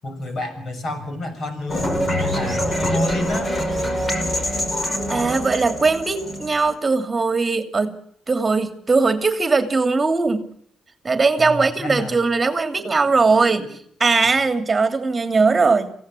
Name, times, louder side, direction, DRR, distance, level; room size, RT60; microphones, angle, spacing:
voice 1, 0.0-3.5 11.4-12.2 13.4-13.5, left 1 dB, 50° left, 8 dB, 6.6 m, -29 dB
sound 1, 1.7-6.7, equal, 30° left, 5.2 m, -24 dB
voice 2, 5.1-8.0 8.3-10.4 11.0-13.7 14.0-15.9, right 4 dB, 25° right, 9 dB, 2.8 m, -19 dB
26.0 x 17.0 x 9.8 m, 0.69 s
cardioid pair, 90°, 0 cm